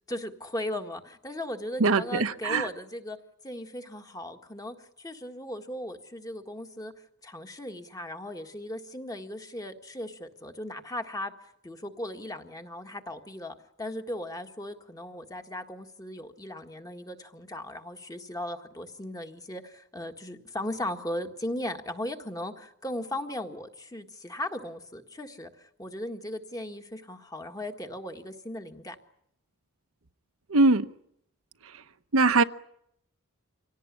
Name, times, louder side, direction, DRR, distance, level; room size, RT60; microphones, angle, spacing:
voice 1, 0.1-3.2 3.4-6.9 7.2-11.3 11.6-29.0, left 1 dB, 15° left, 5 dB, 1.7 m, -37 dB
voice 2, 1.8-2.7 30.5-30.9 32.1-32.4, right 3 dB, 65° right, 9 dB, 1.0 m, -21 dB
25.5 x 18.0 x 9.9 m, 0.75 s
head